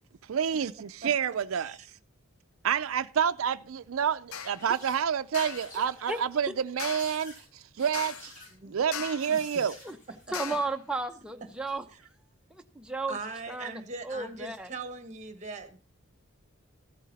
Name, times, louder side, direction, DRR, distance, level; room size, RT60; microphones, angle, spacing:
voice 1, 0.2-1.8 2.6-8.3 8.7-9.8, right 8 dB, 80° right, 0.4 m, -29 dB
sound 1, 4.3-4.6 5.3-5.7 6.8-7.3 7.9-8.4 8.9-9.4 10.3-10.8, left 9 dB, 85° left, 0.6 m, -39 dB
sound 2, 4.6-5.1 5.4-6.4 6.9-7.5 7.8-8.5 9.2-10.3 11.5-11.7, left 1 dB, 40° left, 5.6 m, -49 dB
voice 2, 9.3-9.6 10.3-10.6 11.9-12.0 13.1-15.8, right 3 dB, 35° right, 1.3 m, -41 dB
voice 3, 10.3-11.8 12.5-13.1 13.5-14.7, right 3 dB, 5° right, 0.8 m, -34 dB
13.5 x 9.0 x 4.1 m
head